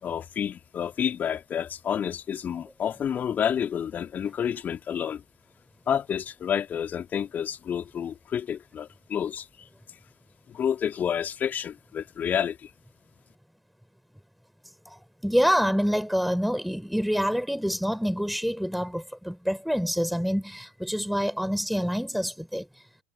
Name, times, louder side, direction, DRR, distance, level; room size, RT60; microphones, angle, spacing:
voice 1, 0.0-5.2 5.9-9.7 10.5-12.7, left 8 dB, 35° left, 3.2 m, -29 dB
voice 2, 14.8-22.8, equal, ahead, 4.3 m, -27 dB
figure-of-eight pair, 75°, 5 cm